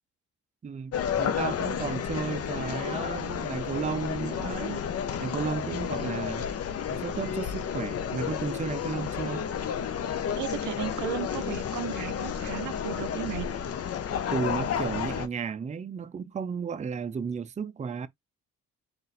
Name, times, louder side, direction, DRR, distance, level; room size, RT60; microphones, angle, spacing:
voice 1, 0.6-4.8 5.2-6.5 6.9-9.5 14.3-18.1, right 6 dB, 25° right, 0.5 m, -33 dB
sound 1, 0.9-15.3, left 8 dB, 55° left, 0.8 m, -31 dB
voice 2, 10.4-13.5, right 14 dB, 80° right, 0.5 m, -35 dB
3.9 x 2.5 x 4.0 m
cardioid pair, 90°, 30 cm